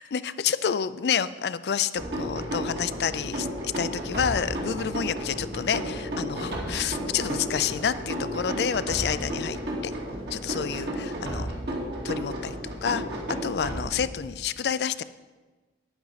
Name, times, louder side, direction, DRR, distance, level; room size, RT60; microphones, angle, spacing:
voice 1, 0.0-9.9 10.3-11.5 12.0-12.6 12.8-13.0 13.3-15.0, left 7 dB, 65° left, 15 dB, 0.4 m, -29 dB
sound 1, 1.9-14.4, equal, 65° right, 2.3 m, -33 dB
10.5 x 9.6 x 4.1 m, 1.3 s
head